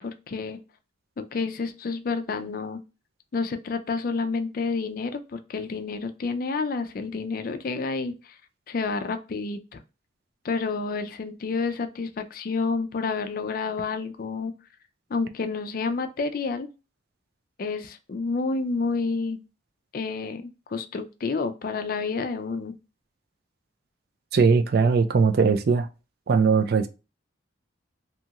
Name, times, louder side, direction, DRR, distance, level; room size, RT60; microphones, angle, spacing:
voice 1, 0.0-0.6 1.2-2.8 3.3-8.4 8.7-9.8 10.4-14.5 15.1-16.7 17.6-19.4 19.9-22.8, left 4 dB, 45° left, 0.3 m, -29 dB
voice 2, 24.3-25.9 26.3-26.9, right 5 dB, 50° right, 0.3 m, -20 dB
2.8 x 2.4 x 2.8 m
head